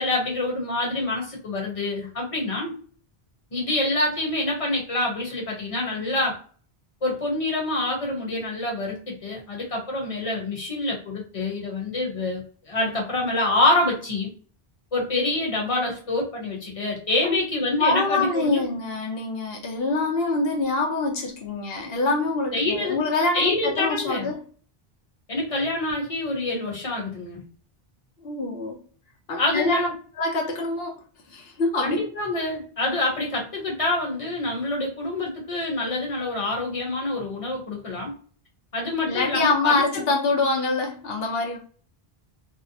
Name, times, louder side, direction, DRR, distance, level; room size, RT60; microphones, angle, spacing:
voice 1, 0.0-2.7 3.5-6.4 7.0-14.3 14.9-18.6 22.5-23.0 23.3-24.3 25.3-27.4 29.4-29.9 31.8-38.1 38.7-39.8, left 2 dB, 35° left, 0.9 m, -26 dB
voice 2, 17.8-24.4 28.2-28.8 29.3-29.9 30.2-31.0 31.3-32.0 39.0-41.6, left 3 dB, 75° left, 0.9 m, -25 dB
2.6 x 2.0 x 2.7 m
omnidirectional pair, 1.0 m